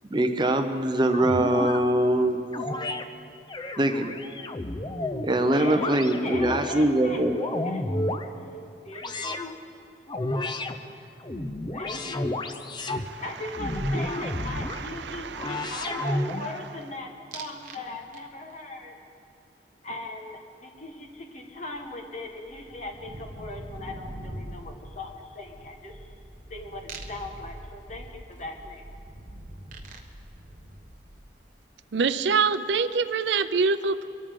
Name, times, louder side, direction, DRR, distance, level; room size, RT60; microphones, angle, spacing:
voice 1, 0.1-2.5 3.8-4.1 5.2-7.3, right 1 dB, 25° right, 6 dB, 0.7 m, -23 dB
sound 1, 1.1-1.8 2.5-3.0 3.5-5.3 5.7-6.6 7.1-8.3 8.9-9.5 10.1-10.7 11.2-13.1 13.6-14.8 15.3-16.6, left 1 dB, 25° left, 0.6 m, -31 dB
voice 2, 5.5-7.2 7.6-8.0 8.4-9.4 10.8-11.1 11.7-12.2 13.2-18.9 19.8-26.1 26.5-28.8, left 2 dB, 40° left, 2 dB, 1.5 m, -39 dB
voice 3, 12.9-13.2 13.9-16.2 31.9-34.1, right 5 dB, 80° right, 12 dB, 0.5 m, -27 dB
sound 2, 17.3-17.8 18.1-18.6 21.0-21.1 21.4-31.4, right 1 dB, 50° right, 1.3 m, -43 dB
23.5 x 13.5 x 3.8 m, 2.5 s
head